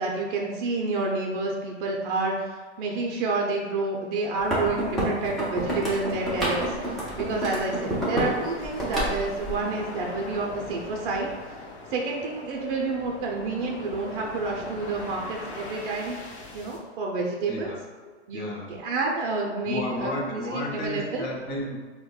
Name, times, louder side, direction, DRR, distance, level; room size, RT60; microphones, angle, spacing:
voice 1, 0.0-11.6 11.9-16.2 16.5-17.7 18.3-18.5 18.8-21.2, right 3 dB, 50° right, -1 dB, 0.6 m, -29 dB
sound 1, 4.4-8.4 8.6-9.5, right 1 dB, ahead, 0.3 m, -28 dB
sound 2, 5.5-16.8, left 3 dB, 65° left, 0.8 m, -41 dB
voice 2, 17.4-17.9 18.3-18.8 19.6-21.8, left 1 dB, 30° left, -2 dB, 0.7 m, -33 dB
5.0 x 2.2 x 2.3 m, 1.4 s
hypercardioid pair, 135°, 35 cm